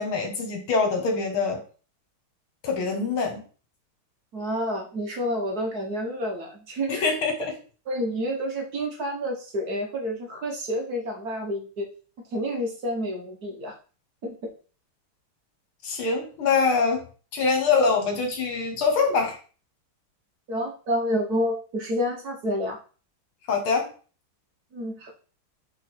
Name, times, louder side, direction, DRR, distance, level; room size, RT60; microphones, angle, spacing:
voice 1, 0.0-1.6 2.6-3.4 6.9-7.5 15.8-17.1 17.3-19.4 23.5-23.9, left 4 dB, 75° left, 4 dB, 2.2 m, -24 dB
voice 2, 4.3-7.1 7.9-11.9 12.3-13.7 14.2-14.5 20.5-22.8 24.7-25.1, equal, 55° right, 1 dB, 1.4 m, -29 dB
5.0 x 4.5 x 4.4 m, 0.38 s
omnidirectional pair, 2.3 m